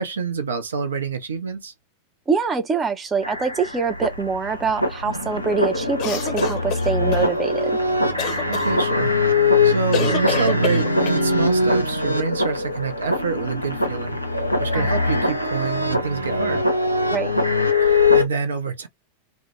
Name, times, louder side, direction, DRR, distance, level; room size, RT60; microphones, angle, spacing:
voice 1, 0.0-1.7 8.5-9.1 9.6-14.2 14.6-16.6 17.8-18.9, right 5 dB, 70° right, 0.5 m, -27 dB
voice 2, 2.3-7.8 14.7-15.0 17.1-17.3, right 5 dB, 20° right, 0.5 m, -24 dB
sound 1, 3.2-18.3, left 2 dB, 90° left, 0.5 m, -22 dB
sound 2, 6.0-7.2 8.2-8.7 9.9-11.2, left 6 dB, 40° left, 0.8 m, -27 dB
2.1 x 2.1 x 2.9 m
figure-of-eight pair, 90°, 0 cm